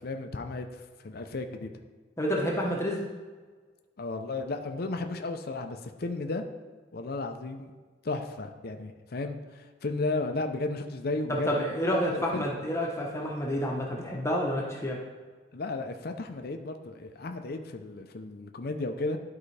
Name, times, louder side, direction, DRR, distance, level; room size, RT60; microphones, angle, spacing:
voice 1, 0.0-1.7 4.0-6.4 6.9-7.7 8.0-12.4 15.5-19.2, left 2 dB, 55° left, 5 dB, 0.6 m, -34 dB
voice 2, 2.2-3.0 11.3-15.0, equal, 15° left, -2 dB, 1.0 m, -29 dB
12.0 x 4.7 x 3.3 m, 1.4 s
head